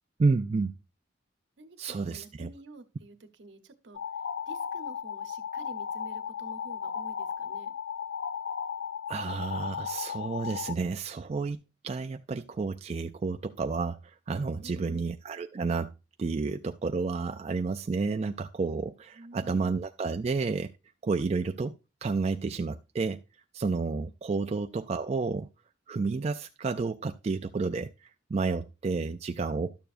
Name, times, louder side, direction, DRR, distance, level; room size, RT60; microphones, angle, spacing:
voice 1, 0.2-0.7 1.8-2.5 9.1-15.9 16.2-20.7 21.0-21.7 22.0-23.2 23.5-25.5 25.9-29.8, right 4 dB, 35° right, 0.3 m, -31 dB
voice 2, 1.6-4.0 4.5-7.8 14.5-15.0 19.1-19.8 24.1-24.5, right 2 dB, 70° right, 1.0 m, -50 dB
sound 1, 3.9-10.8, left 7 dB, 70° left, 0.4 m, -35 dB
12.0 x 6.7 x 2.5 m
head